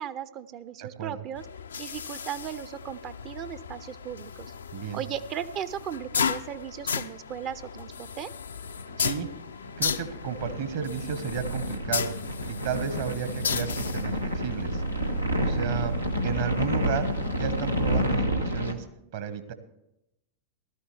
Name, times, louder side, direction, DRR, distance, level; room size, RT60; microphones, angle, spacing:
voice 1, 0.0-1.5 1.8-4.5 4.9-8.3, right 9 dB, 35° right, 14 dB, 0.5 m, -37 dB
voice 2, 0.8-1.2 4.7-5.0 9.0-9.3 9.8-12.1 12.5-14.8 15.4-15.9 16.2-17.1 17.3-18.8 19.1-19.5, right 8 dB, 55° right, 11 dB, 1.2 m, -33 dB
sound 1, 1.3-18.2, left 6 dB, 70° left, 0.4 m, -35 dB
sound 2, 8.7-18.7, equal, 90° right, 1.0 m, -30 dB
16.0 x 13.0 x 3.3 m, 0.85 s
figure-of-eight pair, 90°, 0 cm